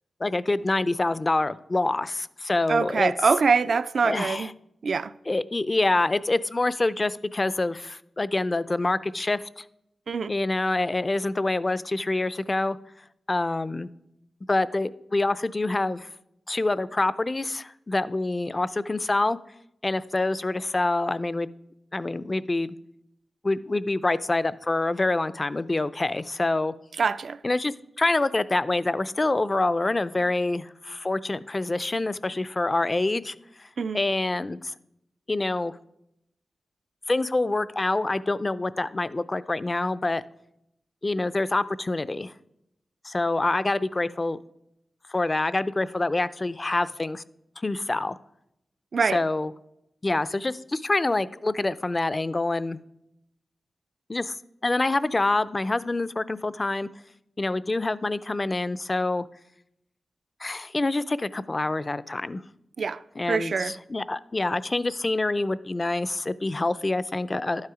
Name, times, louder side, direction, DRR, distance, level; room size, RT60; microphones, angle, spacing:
voice 1, 0.2-3.1 4.0-4.5 5.3-9.6 10.3-12.8 13.3-13.9 14.5-16.1 16.5-19.4 19.8-21.5 21.9-22.8 23.4-26.7 27.4-33.7 33.9-34.7 35.3-35.8 37.1-40.2 41.0-42.3 43.0-44.4 45.1-47.2 47.6-48.2 49.0-49.5 50.0-52.8 54.1-54.3 54.6-56.9 57.4-59.3 60.4-62.4 63.2-67.7, left 2 dB, 30° left, 0.4 m, -26 dB
voice 2, 2.7-4.5 4.8-5.1 10.1-10.3 27.0-27.4 33.8-34.0 48.9-49.2 62.8-63.0 63.3-63.8, right 5 dB, 65° right, 0.4 m, -24 dB
12.0 x 9.6 x 4.9 m
wide cardioid pair, 90°, 0 cm